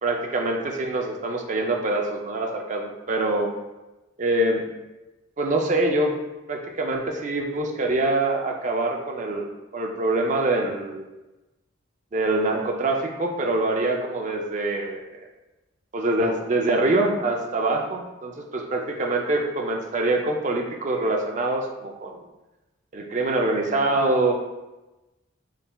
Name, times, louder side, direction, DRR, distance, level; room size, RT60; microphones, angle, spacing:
voice 1, 0.0-3.5 4.2-4.6 5.4-6.1 6.5-9.5 9.7-11.0 12.1-15.0 15.9-22.2 22.9-24.3, right 2 dB, 35° right, 2 dB, 0.4 m, -24 dB
4.0 x 3.8 x 2.2 m, 1.1 s
head